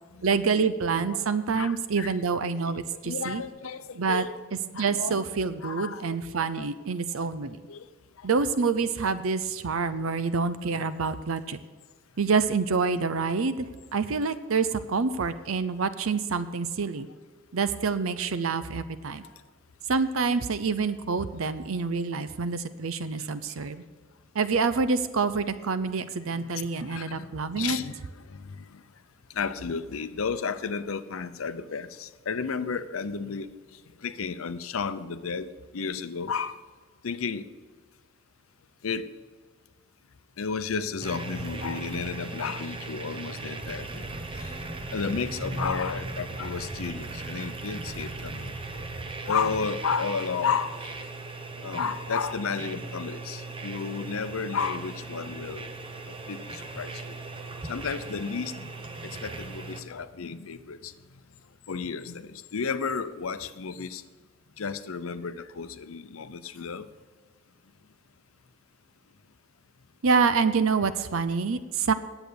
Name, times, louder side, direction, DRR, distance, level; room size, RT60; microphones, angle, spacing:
voice 1, 0.2-3.4 4.0-4.2 4.7-7.6 8.2-11.6 12.2-13.7 13.9-17.1 17.5-19.2 19.9-23.8 24.3-27.8 70.0-71.9, right 5 dB, 80° right, 13 dB, 0.6 m, -27 dB
voice 2, 1.5-2.1 2.9-4.3 4.7-5.2 5.6-6.1 6.3-6.7 7.1-7.3 7.7-7.9 19.2-19.3 26.4-27.3 27.5-28.0 28.3-28.8 29.3-33.5 34.0-36.6 37.0-37.4 38.8-39.1 40.4-44.1 44.4-44.5 44.9-48.5 49.3-50.9 51.6-55.6 56.3-57.2 57.6-58.7 59.0-60.9 61.7-64.0 64.6-66.9, left 5 dB, 85° left, 12 dB, 0.6 m, -32 dB
sound 1, 41.0-59.8, right 3 dB, 25° right, 0.7 m, -38 dB
10.5 x 8.0 x 6.8 m, 1.4 s
head